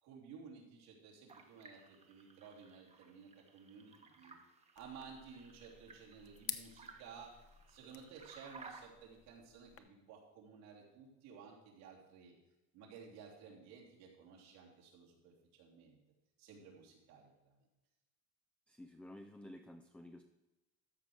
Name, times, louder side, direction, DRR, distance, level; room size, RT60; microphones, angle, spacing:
voice 1, 0.0-4.3 4.7-7.4 7.7-12.3 12.7-16.0 16.4-17.6, right 6 dB, 85° right, -3 dB, 3.4 m, -55 dB
sound 1, 1.3-8.9, right 4 dB, 20° right, 1.0 m, -59 dB
sound 2, 4.8-9.8, left 10 dB, 40° left, 0.8 m, -51 dB
voice 2, 18.7-20.2, left 1 dB, 5° left, 6 dB, 0.3 m, -52 dB
13.0 x 5.1 x 6.3 m, 1.0 s
cardioid pair, 150°, 35 cm